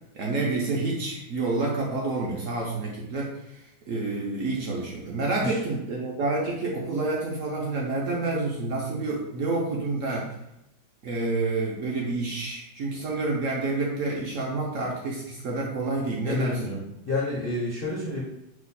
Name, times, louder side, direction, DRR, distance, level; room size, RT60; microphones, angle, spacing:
voice 1, 0.1-10.3 11.0-16.8, right 3 dB, 70° right, -2 dB, 0.7 m, -28 dB
voice 2, 16.3-18.2, left 2 dB, 55° left, -6 dB, 0.6 m, -29 dB
4.8 x 2.1 x 4.1 m, 0.85 s
omnidirectional pair, 2.1 m